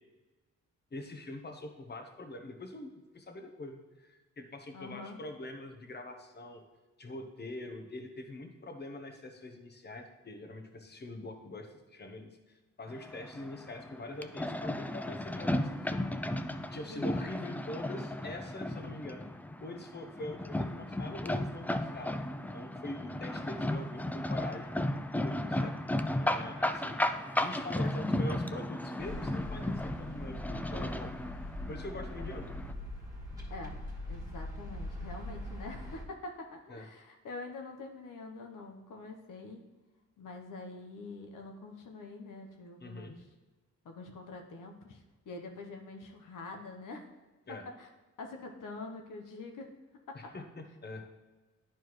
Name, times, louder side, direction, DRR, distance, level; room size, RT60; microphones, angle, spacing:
voice 1, 0.9-6.6 7.0-16.0 16.3-16.5 16.7-19.2 19.6-24.8 25.1-27.0 27.3-31.1 31.7-32.5 36.7-36.9 42.8-43.2 47.5-47.6 50.1-51.0, left 2 dB, 30° left, 5 dB, 1.0 m, -44 dB
voice 2, 4.7-5.2 16.9-17.1 33.5-33.7 34.1-39.6 40.2-43.2 43.8-47.1 47.5-47.9 48.2-49.7 50.1-50.3, left 3 dB, 85° left, 3 dB, 0.9 m, -45 dB
sound 1, 12.9-32.7, left 1 dB, 5° left, 0.3 m, -35 dB
sound 2, 29.0-36.0, left 1 dB, 10° right, 1.8 m, -42 dB
10.5 x 4.5 x 3.1 m, 1.2 s
cardioid pair, 75°, 31 cm